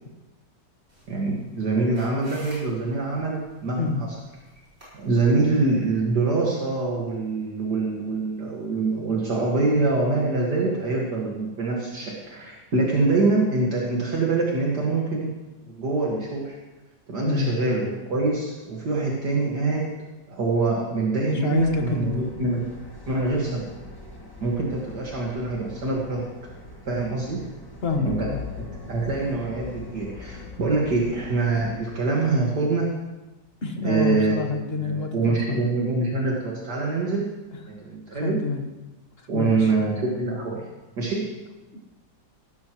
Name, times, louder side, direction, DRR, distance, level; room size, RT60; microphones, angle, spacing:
sound 1, 0.9-6.0, equal, 35° right, 5.7 m, -49 dB
voice 1, 1.1-3.9 4.9-15.3 15.7-16.6 17.1-19.9 20.3-22.6 23.1-23.7 24.4-26.3 26.9-27.4 28.1-28.3 28.9-32.9 33.8-34.3 34.8-37.3 37.7-38.4 39.3-40.6 41.0-41.2, right 3 dB, 65° right, -3 dB, 2.5 m, -24 dB
voice 2, 21.2-22.3 27.8-28.4 33.6-35.7 38.1-38.6 39.2-39.7 41.7-41.8, left 3 dB, 35° left, 4 dB, 1.4 m, -27 dB
sound 2, 21.5-31.7, equal, 15° left, 1.7 m, -44 dB
sound 3, 27.9-32.7, left 6 dB, 60° left, 1.9 m, -41 dB
17.5 x 13.0 x 3.1 m, 1.1 s
omnidirectional pair, 1.9 m